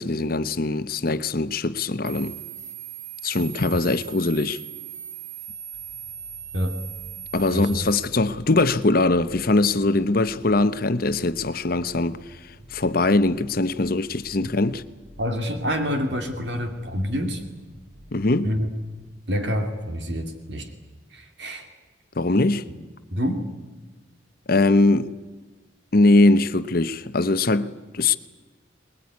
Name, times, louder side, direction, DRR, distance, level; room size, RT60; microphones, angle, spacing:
voice 1, 0.0-2.4 3.2-4.6 7.3-14.8 18.1-18.5 22.2-22.6 24.5-25.1 25.9-28.2, left 2 dB, 50° left, 0.9 m, -21 dB
sound 1, 2.1-8.1, right 9 dB, 35° right, 1.2 m, -39 dB
sound 2, 5.7-19.1, equal, 15° right, 3.4 m, -50 dB
voice 2, 7.5-7.8 15.2-17.4 18.4-18.7 19.3-20.7 21.1-21.7 22.7-22.8 23.1-23.4, equal, 60° right, 2.5 m, -27 dB
22.0 x 21.5 x 9.6 m
head